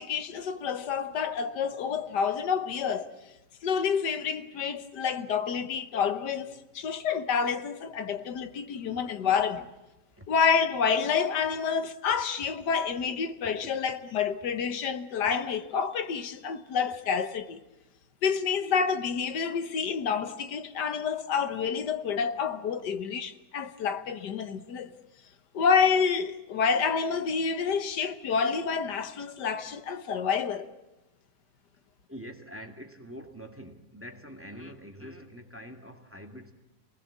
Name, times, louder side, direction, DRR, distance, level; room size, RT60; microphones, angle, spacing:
voice 1, 0.0-3.1 3.6-9.7 10.3-17.6 18.2-25.0 25.5-30.7, left 6 dB, 85° left, 1.7 m, -28 dB
voice 2, 32.1-36.5, equal, 10° right, 2.1 m, -45 dB
27.5 x 20.0 x 7.4 m
omnidirectional pair, 1.8 m